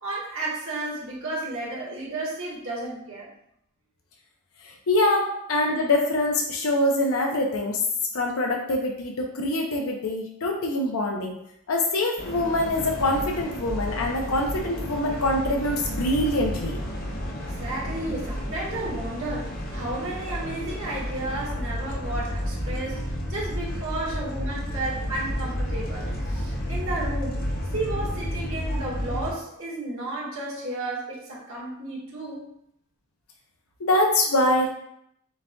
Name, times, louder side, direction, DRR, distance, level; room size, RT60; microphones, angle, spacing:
voice 1, 0.0-3.3 5.3-5.4 17.4-27.4 27.7-32.5, right 2 dB, 65° right, -5 dB, 1.5 m, -33 dB
voice 2, 4.6-7.8 8.1-11.4 11.7-16.8 33.8-34.7, left 1 dB, 75° left, 1 dB, 0.6 m, -24 dB
sound 1, 12.2-29.3, equal, 45° left, 0.7 m, -31 dB
7.1 x 2.5 x 2.2 m, 0.73 s
head